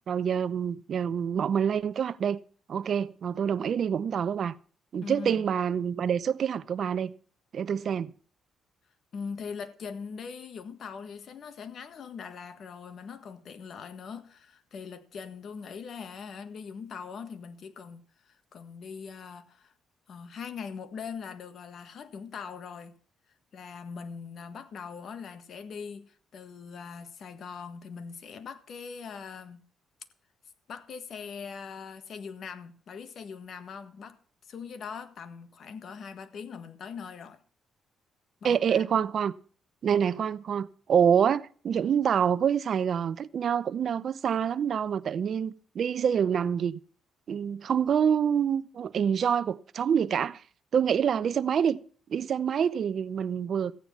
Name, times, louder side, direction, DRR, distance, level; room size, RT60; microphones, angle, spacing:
voice 1, 0.1-2.4 2.7-4.5 4.9-7.1 7.5-8.1 38.4-39.3 39.8-46.8 47.3-50.4 50.7-51.8 52.1-53.7, right 8 dB, 55° right, 0.7 m, -26 dB
voice 2, 5.0-5.5 9.1-19.7 20.1-23.0 23.5-29.6 30.7-34.2 34.4-37.4 38.4-38.8, left 6 dB, 60° left, 1.7 m, -41 dB
14.5 x 9.4 x 5.5 m
cardioid pair, 90°, 0 cm